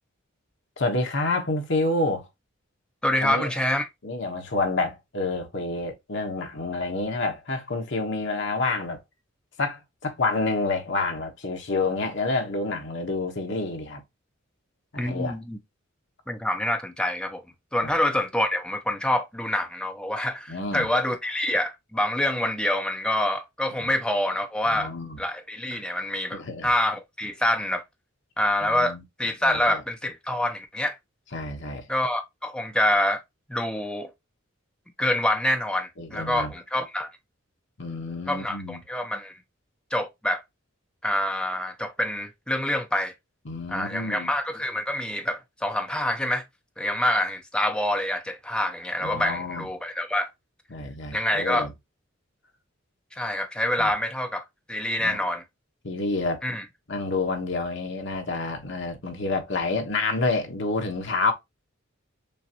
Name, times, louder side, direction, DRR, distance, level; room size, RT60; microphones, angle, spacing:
voice 1, 0.8-2.3 3.2-3.5 4.0-9.0 9.6-14.0 14.9-15.4 17.8-17.9 20.5-20.9 23.8-23.9 24.7-25.2 25.7-25.8 26.3-26.7 28.6-29.0 29.4-29.8 31.3-31.8 36.0-36.5 37.8-38.8 43.4-44.3 49.0-49.7 50.7-51.7 53.8-53.9 55.0-55.2 55.8-56.4 56.9-61.3, left 3 dB, 60° left, 1.1 m, -28 dB
voice 2, 3.0-3.9 15.0-15.6 16.3-17.4 17.7-24.9 25.2-27.8 28.4-31.0 31.9-33.2 33.5-34.1 35.0-37.1 38.3-39.3 39.9-40.4 41.0-43.1 43.7-46.4 46.8-50.3 51.1-51.7 53.1-55.4 56.4-56.6, left 1 dB, 5° left, 0.7 m, -26 dB
6.7 x 2.5 x 2.9 m
head